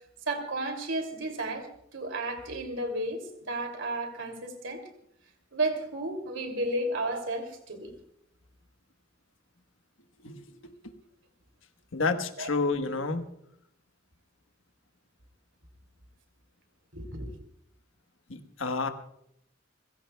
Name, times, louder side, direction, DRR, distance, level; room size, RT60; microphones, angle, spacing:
voice 1, 0.3-4.9 5.5-7.9 12.4-12.5 16.9-17.4, right 2 dB, 80° right, 5 dB, 2.8 m, -33 dB
voice 2, 10.2-10.7 11.9-13.2 18.3-18.9, left 3 dB, 90° left, 6 dB, 1.3 m, -30 dB
29.5 x 16.5 x 2.3 m, 0.73 s
head